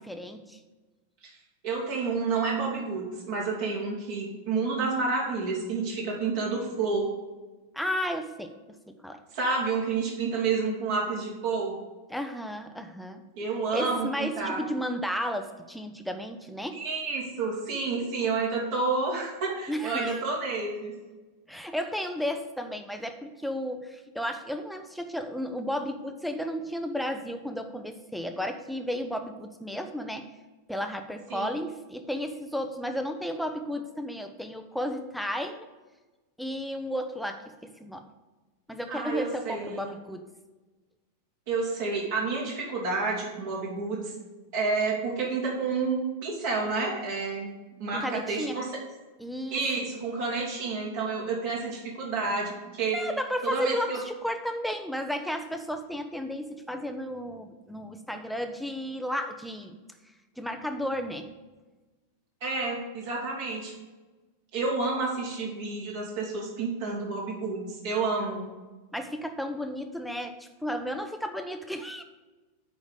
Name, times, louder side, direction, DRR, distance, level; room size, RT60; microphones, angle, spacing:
voice 1, 0.0-0.6 7.7-8.5 8.9-9.2 12.1-13.2 13.7-16.8 19.7-20.2 21.5-30.3 30.7-35.7 36.4-38.1 38.7-40.3 47.9-48.6 49.2-49.6 52.9-59.8 60.4-61.3 68.9-72.0, equal, ahead, 6 dB, 0.8 m, -33 dB
voice 2, 1.6-7.1 9.3-11.8 13.3-14.6 16.7-20.9 31.3-31.5 38.9-39.9 41.5-44.1 44.5-47.5 47.8-48.7 49.5-53.0 53.4-54.0 62.4-63.7 64.5-68.5, right 4 dB, 50° right, -4 dB, 2.9 m, -29 dB
9.2 x 4.1 x 6.7 m, 1.2 s
figure-of-eight pair, 90°, 0 cm